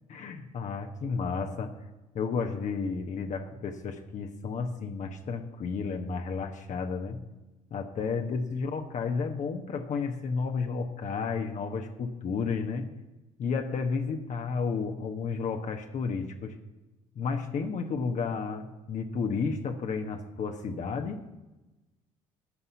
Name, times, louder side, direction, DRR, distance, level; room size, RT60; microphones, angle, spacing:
voice 1, 0.1-1.8 2.1-7.2 7.7-12.9 13.4-16.6 17.1-21.2, left 5 dB, 45° left, 4 dB, 1.2 m, -32 dB
13.5 x 5.5 x 8.2 m, 1.1 s
hypercardioid pair, 60°, 17 cm